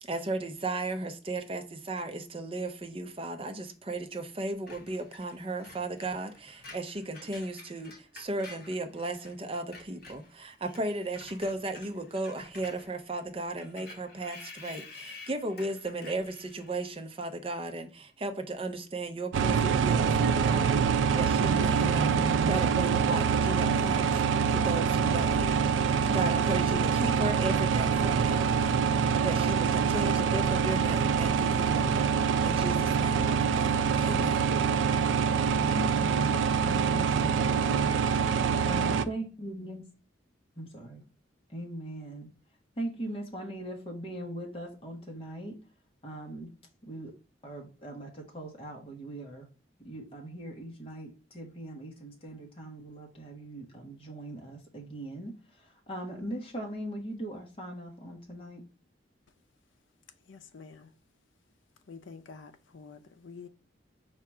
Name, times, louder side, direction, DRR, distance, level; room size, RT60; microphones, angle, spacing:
voice 1, 0.0-24.2 24.5-32.1 32.4-34.5, right 2 dB, 30° right, 0.5 m, -35 dB
Screech, 4.7-9.3 9.6-17.1, left 3 dB, 55° left, 1.2 m, -50 dB
sound 1, 19.3-39.1, right 6 dB, 85° right, 0.3 m, -25 dB
voice 2, 35.7-38.2 38.7-39.8 40.6-41.0 41.5-42.3 42.8-45.6 46.0-46.5 46.8-47.1 47.4-49.5 49.8-58.6, right 1 dB, 30° left, 1.1 m, -40 dB
voice 3, 60.3-60.9 61.9-63.5, left 5 dB, 85° left, 0.5 m, -48 dB
4.7 x 2.4 x 4.2 m
head